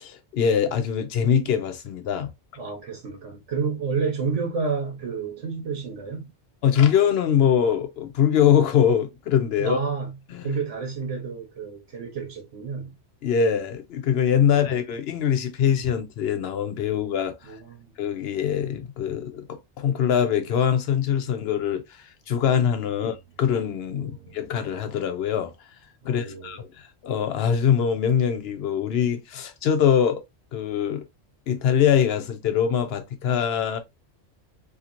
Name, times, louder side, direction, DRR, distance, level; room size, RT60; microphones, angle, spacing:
voice 1, 0.3-2.3 6.6-9.8 10.3-10.5 13.2-17.3 18.0-25.5 26.0-30.2 30.5-31.0 31.5-33.8, left 8 dB, 65° left, 0.8 m, -23 dB
voice 2, 2.6-6.3 9.6-10.1 10.4-12.9 14.5-14.6 17.4-17.9 22.9-23.1 23.9-24.4 26.0-26.6, right 5 dB, 85° right, 1.3 m, -30 dB
2.9 x 2.8 x 2.4 m
omnidirectional pair, 1.2 m